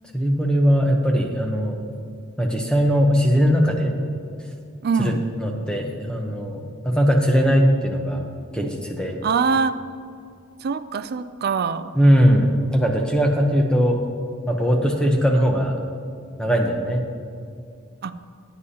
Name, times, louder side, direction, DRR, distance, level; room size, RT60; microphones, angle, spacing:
voice 1, 0.1-1.8 2.4-4.0 5.0-8.2 8.5-9.2 11.9-14.0 14.5-15.7 16.4-17.0, equal, 5° left, 2 dB, 0.8 m, -20 dB
voice 2, 4.8-5.2 9.2-9.8 10.6-12.0 18.0-18.1, right 5 dB, 45° right, 12 dB, 0.3 m, -23 dB
15.0 x 9.8 x 2.8 m, 2.4 s
head